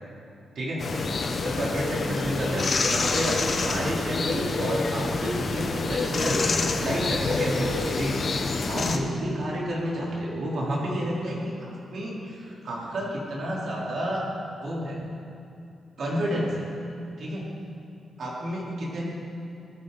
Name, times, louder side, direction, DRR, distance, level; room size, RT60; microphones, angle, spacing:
sound 1, 0.8-9.0, left 3 dB, 45° left, 1.1 m, -27 dB
voice 1, 1.4-6.5 6.8-14.2 14.6-15.0 16.0-16.7 17.2-17.5 18.2-19.0, right 1 dB, 60° right, -5 dB, 4.2 m, -30 dB
19.5 x 14.0 x 4.2 m, 2.7 s
wide cardioid pair, 135°, 0 cm